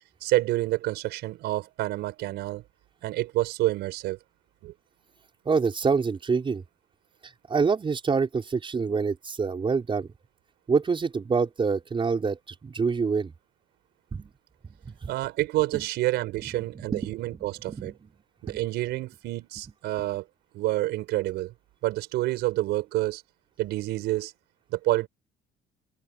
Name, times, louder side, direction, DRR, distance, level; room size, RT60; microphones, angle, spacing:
voice 1, 0.2-2.6 3.0-4.2 4.6-4.7 15.1-17.9 18.4-20.2 20.5-21.5 21.8-23.2 23.6-24.3 24.7-25.1, right 17 dB, 85° right, 5.9 m, -28 dB
voice 2, 5.4-6.6 7.5-10.1 10.7-13.3 14.1-14.3 14.6-15.1 15.7-15.9 16.7-18.1 18.5-18.6 20.0-20.1, right 5 dB, 30° right, 5.7 m, -27 dB
open air
cardioid pair, 110°, 17 cm